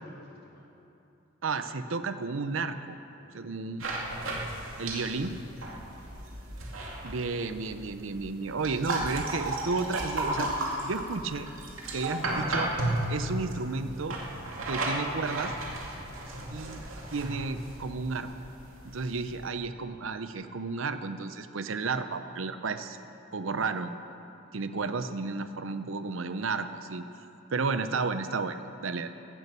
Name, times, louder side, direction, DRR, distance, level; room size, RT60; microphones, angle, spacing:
voice 1, 0.2-0.6 3.1-3.3 5.7-6.2 16.1-16.5 18.7-19.0, left 1 dB, 50° left, -4 dB, 3.3 m, -57 dB
voice 2, 1.4-3.0 3.3-3.8 4.8-5.4 7.0-10.5 10.8-11.5 11.9-12.7 13.1-14.2 14.7-15.5 16.5-16.8 17.1-18.3 18.8-23.0 23.3-23.9 24.5-27.0 27.5-29.1, right 4 dB, 70° right, 10 dB, 0.7 m, -32 dB
sound 1, 3.8-19.5, right 1 dB, 90° right, 2.4 m, -35 dB
16.5 x 11.0 x 6.8 m, 2.9 s
head